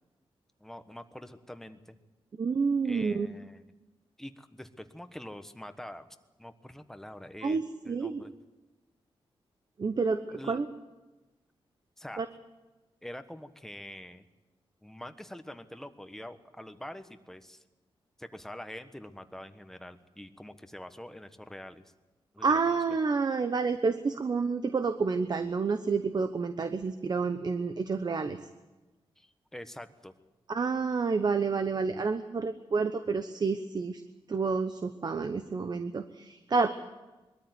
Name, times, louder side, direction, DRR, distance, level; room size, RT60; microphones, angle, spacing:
voice 1, 0.6-2.0 2.8-3.7 4.2-6.1 6.4-8.3 10.3-10.6 12.0-12.2 13.0-14.2 14.8-17.6 18.2-21.9 22.3-22.8 29.2-30.1, left 1 dB, 5° left, 8 dB, 1.3 m, -45 dB
voice 2, 2.4-3.3 7.4-8.2 9.8-10.7 12.2-12.3 22.4-28.4 30.5-34.0 34.3-36.7, right 4 dB, 45° right, 9 dB, 1.0 m, -29 dB
21.5 x 13.5 x 9.6 m, 1.1 s
cardioid pair, 95°, 10 cm